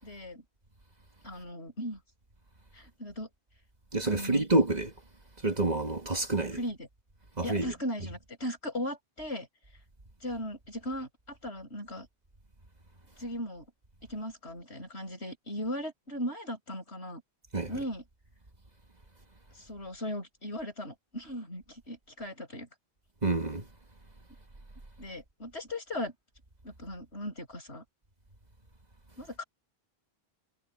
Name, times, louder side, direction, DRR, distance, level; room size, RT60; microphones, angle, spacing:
voice 1, 0.0-0.4 1.2-2.0 2.7-3.3 4.0-4.4 6.5-6.9 7.4-9.5 10.2-12.1 13.2-13.6 14.1-17.2 17.7-18.0 19.6-22.7 25.0-26.1 26.6-27.8 29.2-29.4, equal, 80° left, 7.8 m, -38 dB
voice 2, 3.9-4.9 5.4-6.6 7.4-7.7 17.5-17.7 23.2-23.7, right 2 dB, 40° right, 2.0 m, -28 dB
omnidirectional pair, 1.1 m